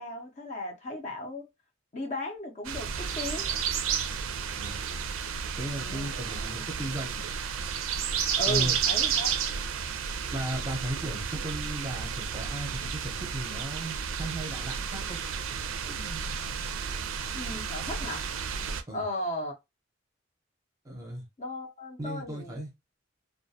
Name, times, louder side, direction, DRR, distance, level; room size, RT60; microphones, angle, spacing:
voice 1, 0.0-1.5 1.9-3.5 5.8-6.1 8.4-9.4 17.3-18.2 18.9-19.5 21.4-22.6, left 1 dB, 35° left, 0.6 m, -36 dB
sound 1, 2.6-18.8, right 7 dB, 85° right, 0.4 m, -32 dB
voice 2, 5.6-7.2 8.5-8.8 10.3-15.2 15.9-16.2 18.9-19.0 20.8-21.2 22.0-22.7, right 1 dB, 15° right, 0.6 m, -36 dB
2.3 x 2.1 x 2.7 m
head